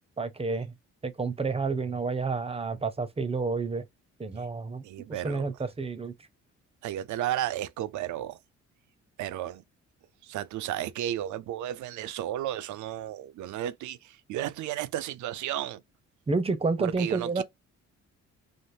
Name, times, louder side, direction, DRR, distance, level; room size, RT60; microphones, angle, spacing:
voice 1, 0.2-0.7 1.0-3.8 4.2-6.1 16.3-17.4, right 4 dB, 20° right, 0.6 m, -30 dB
voice 2, 4.8-5.5 6.8-8.4 9.2-9.6 10.2-15.8 16.8-17.4, right 12 dB, 75° right, 0.5 m, -33 dB
3.3 x 2.1 x 2.6 m
cardioid pair, 90°, 30 cm